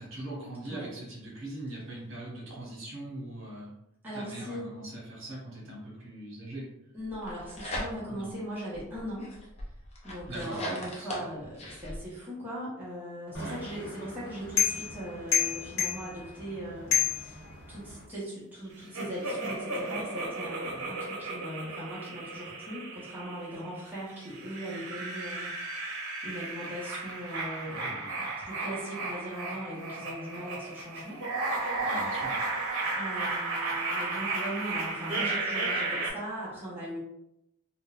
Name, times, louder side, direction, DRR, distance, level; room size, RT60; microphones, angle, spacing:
voice 1, 0.0-3.7 4.1-6.7 8.1-8.3 10.3-11.3 13.3-13.6 31.8-32.4, right 1 dB, 60° right, -5 dB, 1.2 m, -41 dB
voice 2, 4.0-4.7 6.9-9.3 10.0-31.2 32.9-37.0, equal, 10° right, -9 dB, 0.9 m, -39 dB
sound 1, 7.1-8.3 8.7-12.0, equal, 30° left, 0.6 m, -39 dB
sound 2, 13.3-18.0, left 8 dB, 65° left, 1.1 m, -31 dB
sound 3, 18.9-23.7 24.2-36.1, right 2 dB, 75° right, 0.7 m, -34 dB
3.7 x 2.2 x 2.3 m, 0.83 s
head